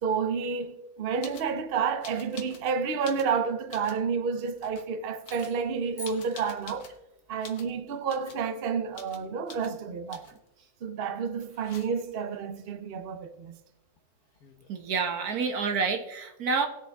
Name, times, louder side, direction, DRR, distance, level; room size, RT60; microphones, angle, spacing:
voice 1, 0.0-6.9 7.3-10.3 10.8-13.6, right 6 dB, 45° right, 0.9 m, -30 dB
sound 1, 1.2-1.5 2.0-2.7 3.0-4.0 4.6-4.9 5.2-7.0 7.4-7.7 8.1-8.5 8.9-9.2 9.5-9.7 10.1-10.5 11.4-12.2 14.0-14.1 14.2-14.8, left 5 dB, 90° left, 1.7 m, -48 dB
sound 2, 5.3-7.2, left 1 dB, 30° right, 2.2 m, -48 dB
voice 2, 14.7-16.7, right 5 dB, 85° right, 1.8 m, -28 dB
19.0 x 7.0 x 3.5 m
omnidirectional pair, 1.6 m